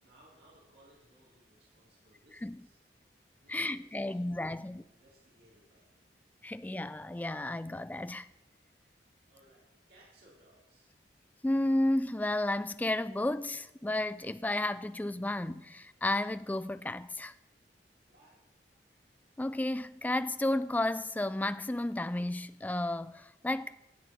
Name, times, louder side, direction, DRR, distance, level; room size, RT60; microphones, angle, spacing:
voice 1, 0.0-2.8 3.4-6.1 9.3-10.9 18.1-18.4, right 1 dB, 65° right, 3.9 m, -63 dB
voice 2, 3.5-4.8 6.4-8.3 11.4-17.3 19.4-23.8, left 1 dB, 10° left, 0.3 m, -32 dB
13.0 x 8.1 x 6.1 m
head